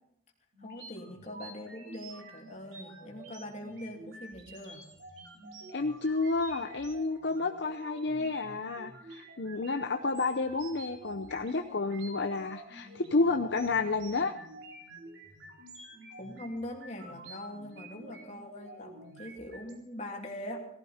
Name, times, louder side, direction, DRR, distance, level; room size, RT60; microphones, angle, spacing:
sound 1, 0.5-19.7, right 2 dB, 65° right, 4.3 m, -49 dB
voice 1, 0.6-4.8 16.2-20.6, left 1 dB, 35° left, 1 dB, 3.0 m, -42 dB
voice 2, 5.7-14.3, left 3 dB, 60° left, 6 dB, 0.8 m, -30 dB
18.5 x 15.5 x 4.4 m, 0.72 s
head